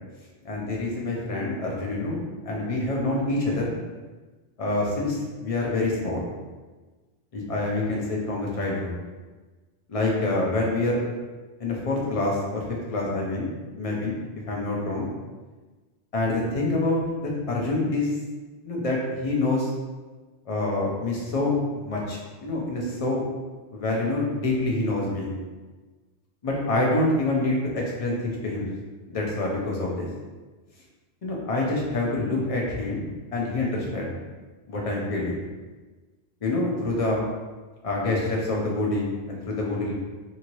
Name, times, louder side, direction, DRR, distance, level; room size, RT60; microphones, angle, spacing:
voice 1, 0.4-2.2 2.4-3.8 4.6-6.2 7.3-9.0 9.9-11.0 11.6-14.2 14.5-15.1 16.1-18.1 18.6-19.7 20.5-23.2 23.7-25.3 26.4-28.7 29.1-30.1 31.2-33.1 33.3-34.1 34.7-35.4 36.4-37.2 37.8-39.9, left 2 dB, 40° left, -3 dB, 0.6 m, -26 dB
2.8 x 2.7 x 2.9 m, 1.3 s
omnidirectional pair, 1.2 m